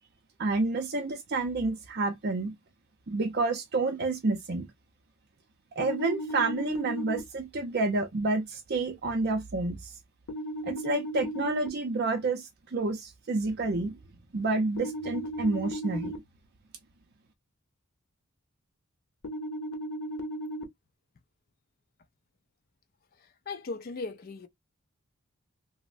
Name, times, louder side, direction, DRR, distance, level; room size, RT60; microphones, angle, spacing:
voice 1, 0.4-2.6 3.1-4.7 5.8-9.9 10.6-14.0 14.3-16.1, right 3 dB, 45° right, 0.5 m, -29 dB
sound 1, 5.8-7.2 10.3-11.7 14.8-16.2 19.2-20.6, equal, 80° left, 0.8 m, -35 dB
voice 2, 23.5-24.5, left 3 dB, 40° left, 0.4 m, -37 dB
3.1 x 2.0 x 2.4 m
head